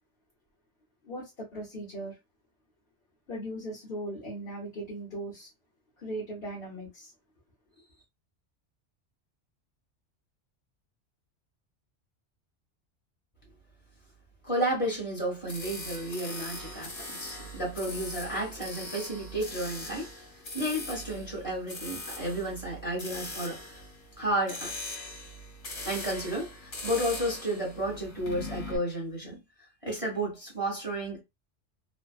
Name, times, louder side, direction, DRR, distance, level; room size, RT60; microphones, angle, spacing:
voice 1, 1.0-2.2 3.3-5.5 6.0-7.1 7.8-8.0, right 1 dB, 55° left, 1.2 m, -38 dB
voice 2, 14.4-20.2 20.5-23.8 24.2-24.8 25.8-29.4 29.8-31.2, right 1 dB, 30° left, 1.5 m, -32 dB
sound 1, 15.5-28.8, left 2 dB, 80° left, 1.5 m, -41 dB
3.2 x 2.2 x 2.4 m
omnidirectional pair, 1.2 m